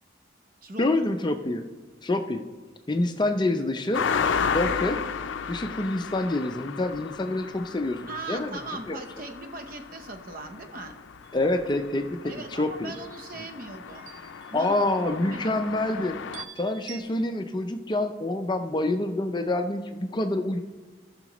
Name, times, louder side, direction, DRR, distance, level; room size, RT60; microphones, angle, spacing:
voice 1, 0.8-1.6 2.0-2.4 2.9-4.0 4.5-5.0 5.5-8.0 8.3-8.5 8.9-9.0 11.3-12.9 14.5-20.6, left 2 dB, 25° left, 7 dB, 0.4 m, -27 dB
sound 1, 3.9-16.4, left 6 dB, 80° left, 0.4 m, -34 dB
voice 2, 8.1-11.0 12.2-14.1 14.5-14.8 15.3-15.6, right 2 dB, 45° right, 6 dB, 0.8 m, -39 dB
sound 2, 11.2-11.8 13.9-15.3 16.3-17.0, right 10 dB, 85° right, 0.7 m, -46 dB
17.0 x 5.9 x 3.0 m, 1.3 s
head